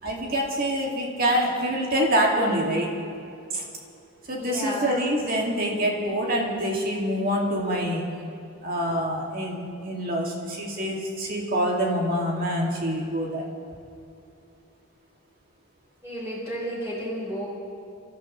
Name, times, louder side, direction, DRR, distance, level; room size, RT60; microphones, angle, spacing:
voice 1, 0.0-2.9 3.5-3.6 4.3-8.0 8.6-13.5, equal, 40° right, -1 dB, 2.4 m, -26 dB
voice 2, 4.4-4.9 16.0-17.4, equal, 15° right, -7 dB, 4.4 m, -32 dB
26.0 x 14.0 x 3.3 m, 2.7 s
head